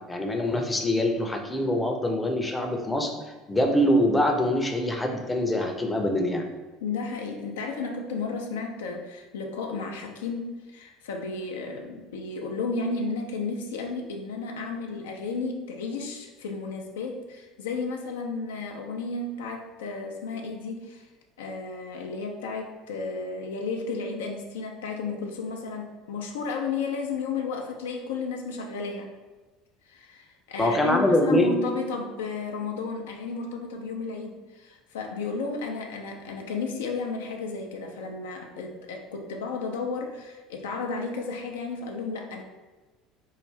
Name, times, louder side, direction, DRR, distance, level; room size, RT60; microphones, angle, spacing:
voice 1, 0.1-3.1 3.5-6.4 30.6-31.7, left 1 dB, 10° left, 3 dB, 0.6 m, -24 dB
voice 2, 6.8-21.1 21.4-29.1 29.9-42.4, left 4 dB, 70° left, 2 dB, 0.4 m, -33 dB
4.6 x 2.5 x 3.2 m, 1.3 s
figure-of-eight pair, 65°, 0 cm